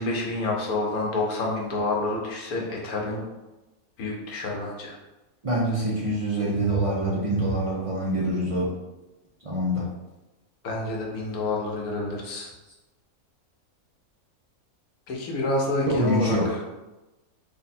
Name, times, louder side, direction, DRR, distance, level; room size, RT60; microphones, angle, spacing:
voice 1, 0.0-3.2 4.0-5.0 10.6-12.5 15.1-16.6, left 2 dB, 85° left, -2 dB, 1.3 m, -28 dB
voice 2, 5.4-8.7 9.4-9.9 15.9-16.5, right 1 dB, 45° right, -5 dB, 0.4 m, -25 dB
3.6 x 2.2 x 4.1 m, 1.1 s
omnidirectional pair, 1.5 m